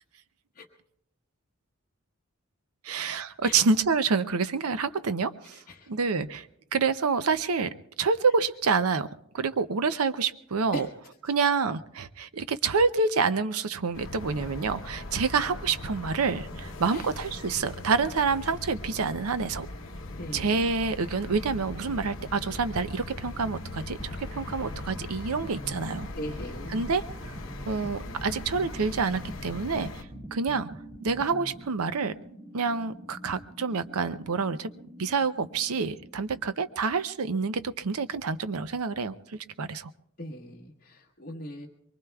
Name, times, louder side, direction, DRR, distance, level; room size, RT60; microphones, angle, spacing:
voice 1, 2.8-5.6 5.9-6.5 6.7-9.1 9.3-10.9 11.3-19.7 20.3-26.1 26.7-27.0 27.7-30.1 30.3-30.7 31.0-32.1 32.5-34.7 35.0-39.9, right 4 dB, 85° right, 13 dB, 0.6 m, -27 dB
voice 2, 5.5-5.9 10.7-10.9 16.9-17.1 20.2-20.7 26.2-26.8 28.2-28.3 40.2-41.7, left 1 dB, 35° left, -3 dB, 1.3 m, -40 dB
sound 1, 13.9-30.0, left 2 dB, 65° left, 0.9 m, -40 dB
sound 2, 23.7-37.7, right 1 dB, 45° right, 5.8 m, -49 dB
sound 3, 24.0-31.6, equal, 15° right, 0.6 m, -44 dB
23.5 x 23.5 x 2.3 m, 0.77 s
head